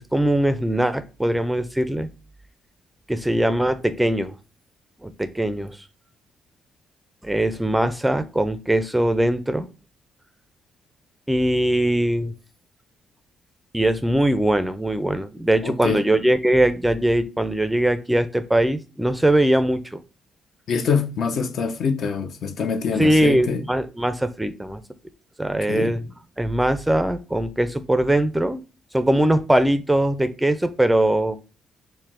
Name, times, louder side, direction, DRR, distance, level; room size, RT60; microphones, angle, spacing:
voice 1, 0.1-2.1 3.1-4.3 5.0-5.8 7.2-9.7 11.3-12.3 13.7-20.0 23.0-24.8 25.4-26.0 26.4-28.6 28.9-31.4, right 1 dB, 5° right, 0.4 m, -21 dB
voice 2, 15.6-16.0 20.7-23.6 25.6-25.9, left 5 dB, 65° left, 0.5 m, -25 dB
4.5 x 2.1 x 3.6 m
cardioid pair, 90°, 0 cm